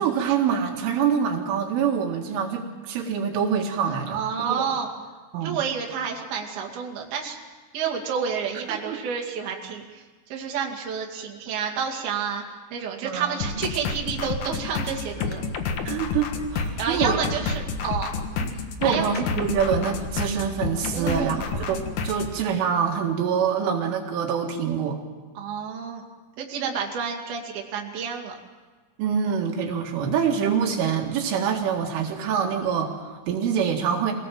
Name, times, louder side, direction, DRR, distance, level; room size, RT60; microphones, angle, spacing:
voice 1, 0.0-4.7 5.3-5.6 8.7-9.0 13.0-13.6 15.9-17.4 18.4-18.5 18.8-25.0 29.0-34.1, right 7 dB, 80° right, 1 dB, 4.3 m, -25 dB
voice 2, 4.1-4.9 5.4-7.4 7.7-10.0 10.3-12.4 12.7-15.4 16.8-18.1 18.8-19.1 20.9-21.4 25.4-26.0 26.4-28.4, right 6 dB, 55° right, 0 dB, 3.9 m, -29 dB
sound 1, 13.4-22.3, left 5 dB, 65° left, 2.0 m, -29 dB
25.0 x 18.0 x 7.6 m, 1.4 s
omnidirectional pair, 5.6 m